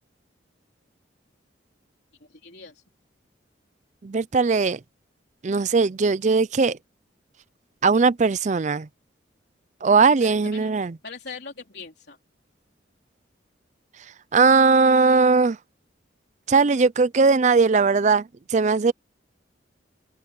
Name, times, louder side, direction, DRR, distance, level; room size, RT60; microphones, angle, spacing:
voice 1, 2.2-2.8 10.0-10.7 11.0-12.2, left 4 dB, 60° left, 3.8 m, -41 dB
voice 2, 4.0-4.8 5.4-6.8 7.8-8.9 9.8-10.9 14.3-15.6 16.5-18.9, right 4 dB, 40° right, 0.4 m, -19 dB
open air
head